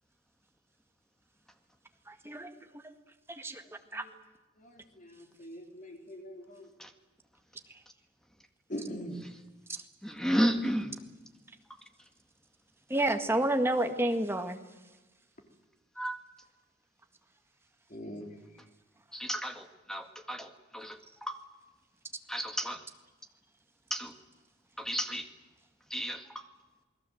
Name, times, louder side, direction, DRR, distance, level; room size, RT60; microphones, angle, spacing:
voice 1, 2.1-2.5 3.4-3.6 3.9-4.0 12.9-14.6, right 1 dB, 15° right, 6 dB, 1.8 m, -29 dB
voice 2, 4.6-6.7 8.7-9.2 17.9-18.3, equal, 40° left, 3 dB, 3.6 m, -42 dB
voice 3, 10.0-11.0 16.0-16.2 19.1-21.4 22.3-22.8 23.9-24.1 24.8-25.3 25.9-26.4, equal, 5° left, 6 dB, 2.0 m, -33 dB
28.0 x 21.0 x 7.9 m, 1.2 s
head